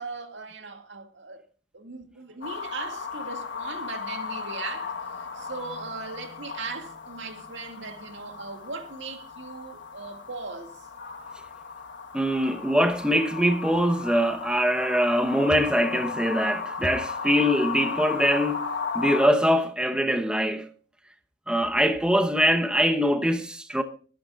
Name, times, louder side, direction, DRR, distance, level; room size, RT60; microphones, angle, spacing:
voice 1, 0.0-1.4 1.7-10.8, right 4 dB, 75° right, 2.2 m, -39 dB
sound 1, 2.4-19.3, left 5 dB, 70° left, 1.3 m, -36 dB
voice 2, 12.1-18.6 18.9-20.7 21.5-23.8, equal, 5° right, 0.9 m, -23 dB
25.0 x 10.5 x 2.4 m
head